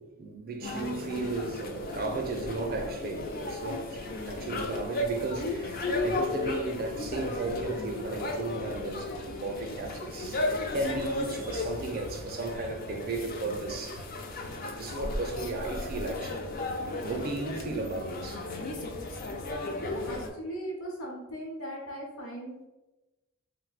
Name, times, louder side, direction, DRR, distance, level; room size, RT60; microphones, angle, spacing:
voice 1, 0.0-14.0 14.6-16.5 17.0-18.4, right 2 dB, 45° right, 0.4 m, -35 dB
sound 1, 0.6-20.3, left 2 dB, 45° left, 0.4 m, -35 dB
voice 2, 19.4-22.7, equal, 70° left, 0.9 m, -38 dB
2.5 x 2.1 x 3.9 m
head